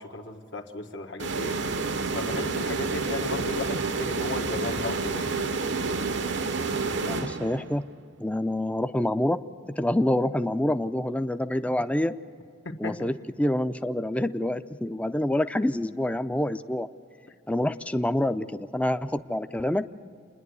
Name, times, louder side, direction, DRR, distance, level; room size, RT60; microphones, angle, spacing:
voice 1, 0.0-1.6 2.1-5.4 12.6-13.1, left 3 dB, 75° left, 3 dB, 1.6 m, -35 dB
sound 1, 1.2-7.8, right 4 dB, 70° right, 0.8 m, -29 dB
voice 2, 7.0-7.8 8.2-9.4 9.7-12.1 12.8-16.9 17.5-19.9, left 1 dB, 5° left, 10 dB, 0.5 m, -27 dB
28.0 x 10.5 x 9.6 m, 2.3 s
head